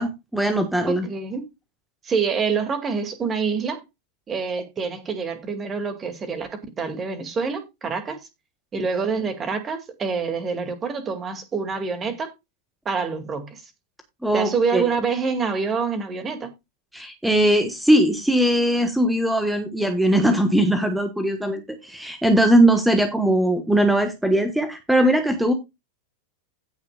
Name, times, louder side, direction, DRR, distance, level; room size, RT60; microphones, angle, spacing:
voice 1, 0.0-1.1 14.2-14.9 16.9-25.5, right 1 dB, 5° right, 1.3 m, -20 dB
voice 2, 0.9-1.4 2.0-3.8 4.3-8.2 8.7-12.3 12.9-13.6 14.3-16.5, right 5 dB, 20° right, 2.2 m, -26 dB
16.0 x 6.3 x 2.3 m
figure-of-eight pair, 90°, 0 cm